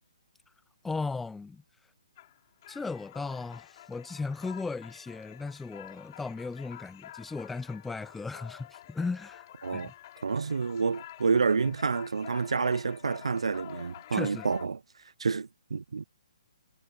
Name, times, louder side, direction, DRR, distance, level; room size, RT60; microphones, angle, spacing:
voice 1, 0.8-1.6 2.7-9.5 9.7-9.9 14.1-14.5, left 4 dB, 5° left, 0.5 m, -36 dB
sound 1, 2.2-14.7, left 13 dB, 40° left, 6.8 m, -49 dB
voice 2, 10.2-14.8 15.2-16.0, right 5 dB, 85° right, 0.4 m, -28 dB
hypercardioid pair, 155°, 3 cm